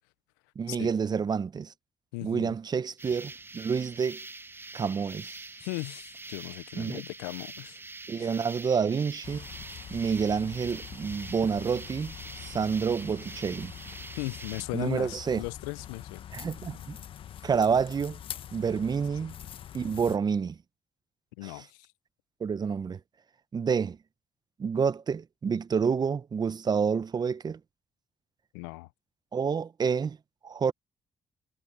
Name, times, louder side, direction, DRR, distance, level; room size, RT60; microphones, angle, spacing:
voice 1, 0.5-1.7 2.2-4.2 4.7-5.4 6.7-7.0 8.1-9.5 9.9-12.1 12.4-13.7 14.7-15.4 16.3-17.0 17.4-18.2 18.5-19.3 19.7-20.6 21.4-21.5 22.4-23.0 23.5-24.0 24.6-27.6 29.3-30.2 30.4-30.7, right 6 dB, 40° right, 1.1 m, -28 dB
voice 2, 2.1-2.5 5.6-7.8 8.2-8.4 14.2-16.2 21.4-21.9 28.5-28.9, left 26 dB, 80° left, 0.7 m, -37 dB
sound 1, 3.0-14.6, right 3 dB, 20° right, 1.2 m, -44 dB
sound 2, 9.2-20.2, left 10 dB, 60° left, 1.4 m, -44 dB
hypercardioid pair, 45°, 10 cm